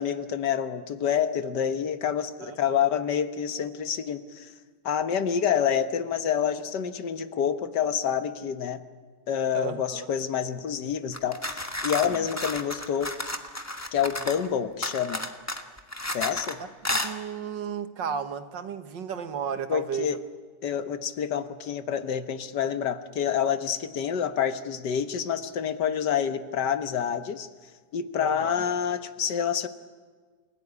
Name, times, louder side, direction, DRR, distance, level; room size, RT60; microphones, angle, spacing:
voice 1, 0.0-4.5 4.8-8.8 9.3-13.1 13.9-15.2 16.1-16.6 19.7-20.2 20.6-27.5 27.9-29.7, left 8 dB, 70° left, 1.7 m, -28 dB
voice 2, 2.4-2.9 9.5-10.1 12.0-12.3 16.9-20.2 28.2-28.7, right 7 dB, 80° right, 2.1 m, -34 dB
sound 1, 11.1-14.5 14.8-16.5 16.8-17.1, left 1 dB, 10° left, 1.3 m, -32 dB
28.5 x 16.5 x 9.7 m
omnidirectional pair, 1.9 m